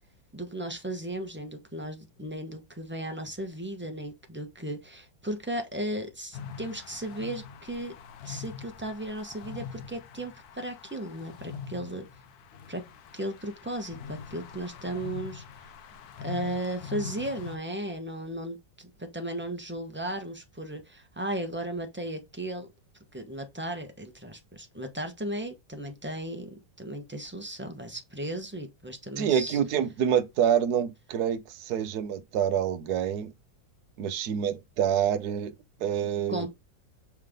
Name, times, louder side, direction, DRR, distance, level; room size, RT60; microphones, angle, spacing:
voice 1, 0.3-7.9 8.2-12.1 12.7-12.9 13.1-15.7 16.2-22.7 23.1-29.6 36.3-36.5, right 1 dB, 10° right, 1.0 m, -36 dB
sound 1, 6.3-17.6, left 6 dB, 65° left, 1.2 m, -43 dB
voice 2, 29.2-33.3 34.0-35.5 35.8-36.5, right 9 dB, 65° right, 1.3 m, -27 dB
7.4 x 3.5 x 3.7 m
omnidirectional pair, 2.0 m